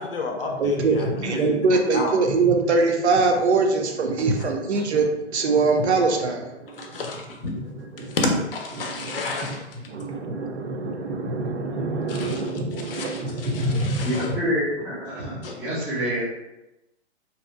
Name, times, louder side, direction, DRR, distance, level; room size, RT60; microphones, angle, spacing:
voice 1, 0.0-1.1 1.4-1.5 1.9-2.1 6.8-7.5 8.1-9.7 12.1-12.4 12.8-14.3 15.4-15.5, left 3 dB, 50° left, 2 dB, 0.5 m, -30 dB
voice 2, 0.6-5.1 5.3-6.4 8.8-8.9 9.9-14.4, right 3 dB, 70° right, 3 dB, 0.5 m, -23 dB
voice 3, 14.1-16.2, equal, 5° right, -12 dB, 0.3 m, -27 dB
2.7 x 2.0 x 2.3 m, 0.93 s
figure-of-eight pair, 125°, 35 cm